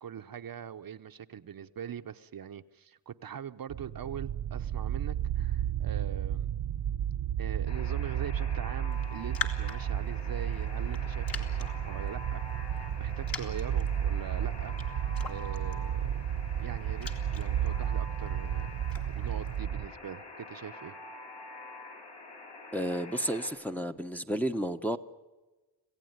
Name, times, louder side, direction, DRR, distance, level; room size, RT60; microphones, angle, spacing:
voice 1, 0.0-6.5 7.4-12.5 13.0-15.0 15.3-16.1 16.6-18.7 19.1-21.0, right 8 dB, 55° right, 0.8 m, -42 dB
sound 1, 3.7-19.9, right 10 dB, 75° right, 0.9 m, -32 dB
Alarm, 7.7-23.5, left 2 dB, 70° left, 7.8 m, -47 dB
Raindrop, 8.9-19.6, left 4 dB, 50° left, 2.4 m, -45 dB
voice 2, 22.7-25.0, equal, 5° left, 0.9 m, -32 dB
26.5 x 16.0 x 9.4 m
cardioid pair, 95°, 43 cm